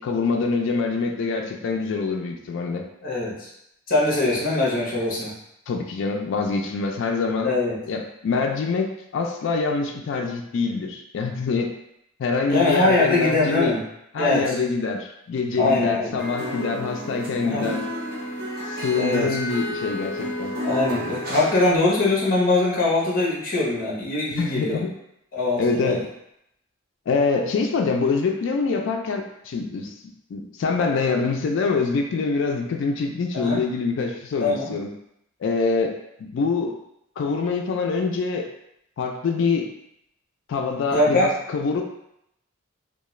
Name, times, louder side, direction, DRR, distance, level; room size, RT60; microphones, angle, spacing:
voice 1, 0.0-2.9 5.7-7.5 7.9-11.7 12.2-13.8 14.1-17.8 18.7-20.6 24.4-24.9 25.6-26.0 27.1-29.9 30.3-34.9 35.4-35.9 36.2-36.8 37.2-38.5 39.0-39.7 40.5-41.8, left 4 dB, 60° left, 3 dB, 0.3 m, -25 dB
voice 2, 3.0-3.5 3.9-5.3 7.4-7.8 12.5-13.8 14.2-14.6 15.6-16.2 17.4-17.7 18.9-19.3 20.6-24.8 25.3-26.0 33.3-33.6 34.4-34.7 40.9-41.3, left 2 dB, 45° left, -4 dB, 0.7 m, -22 dB
sound 1, 16.2-21.7, left 1 dB, 45° right, 0.7 m, -31 dB
2.3 x 2.3 x 3.0 m, 0.80 s
head